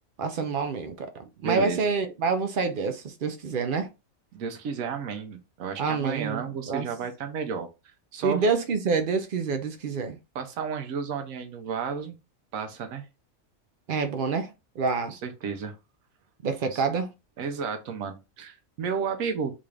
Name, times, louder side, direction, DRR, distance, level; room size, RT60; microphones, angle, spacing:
voice 1, 0.2-3.9 5.8-6.9 8.2-10.2 13.9-15.2 16.4-17.1, right 4 dB, 60° right, 0.6 m, -27 dB
voice 2, 1.4-1.8 4.3-7.7 8.1-8.4 10.3-12.2 12.5-13.0 15.1-15.8 16.7-16.8 17.4-19.5, right 6 dB, 85° right, 1.1 m, -32 dB
3.8 x 2.4 x 3.2 m
omnidirectional pair, 1.4 m